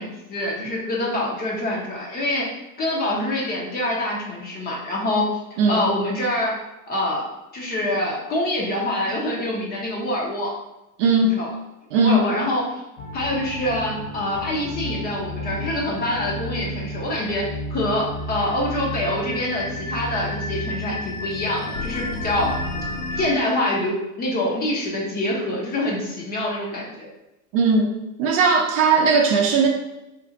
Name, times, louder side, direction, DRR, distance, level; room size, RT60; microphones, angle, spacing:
voice 1, 0.0-2.5 2.8-5.3 5.7-6.6 6.9-7.3 7.5-10.5 11.2-11.5 11.9-12.6 13.1-22.5 23.1-27.1, left 1 dB, 20° left, -2 dB, 0.6 m, -25 dB
voice 2, 11.0-11.4 11.9-12.2 27.5-27.9 28.2-29.7, right 4 dB, 45° right, 2 dB, 0.6 m, -18 dB
sound 1, 13.0-23.3, left 1 dB, 60° left, 0.8 m, -31 dB
2.6 x 2.4 x 3.9 m, 0.95 s
hypercardioid pair, 120°, 42 cm